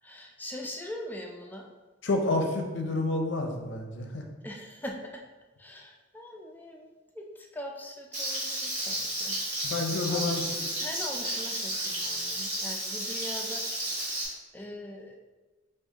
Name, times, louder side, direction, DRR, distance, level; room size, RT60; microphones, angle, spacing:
voice 1, 0.0-1.7 4.4-5.2 5.6-9.4 10.1-13.9 14.2-15.2, left 1 dB, 10° left, 1 dB, 0.3 m, -42 dB
voice 2, 2.0-4.3 9.6-10.4, left 2 dB, 65° left, 2 dB, 0.5 m, -29 dB
Frying (food), 8.1-14.2, right 1 dB, 35° right, 1.3 m, -32 dB
4.6 x 2.4 x 2.8 m, 1.2 s
head